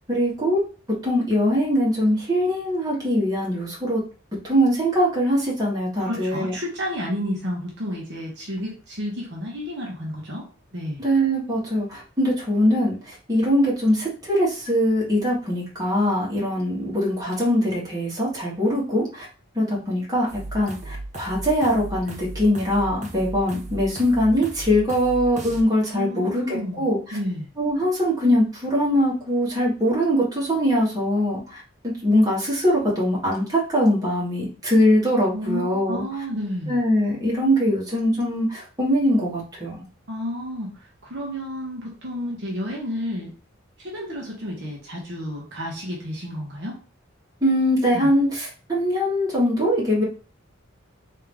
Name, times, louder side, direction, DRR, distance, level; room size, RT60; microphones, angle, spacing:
voice 1, 0.1-0.6 1.0-4.0 4.4-6.5 11.0-13.0 13.3-19.3 19.5-20.3 20.5-27.2 27.6-31.6 32.0-36.0 36.7-39.8 47.4-50.0, equal, 20° right, -5 dB, 1.5 m, -22 dB
voice 2, 6.0-10.5 10.7-11.0 25.9-26.8 27.1-27.5 35.3-36.8 40.1-40.8 41.0-43.3 43.8-46.8 47.9-48.1, equal, 60° right, -2 dB, 1.0 m, -31 dB
sound 1, 20.3-25.6, right 2 dB, 35° right, 0.8 m, -36 dB
3.6 x 2.8 x 3.4 m, 0.36 s
head